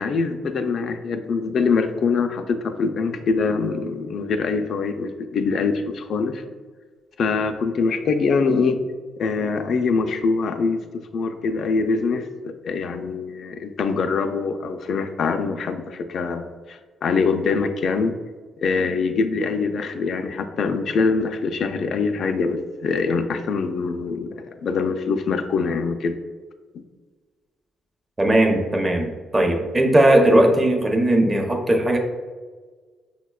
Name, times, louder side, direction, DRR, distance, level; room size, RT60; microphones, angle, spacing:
voice 1, 0.0-6.4 7.2-8.8 9.2-10.8 11.1-18.1 18.6-26.2, left 4 dB, 60° left, 7 dB, 0.3 m, -24 dB
voice 2, 28.2-32.0, right 1 dB, 20° right, 3 dB, 0.6 m, -18 dB
5.7 x 2.1 x 2.2 m, 1.4 s
cardioid pair, 90°, 0 cm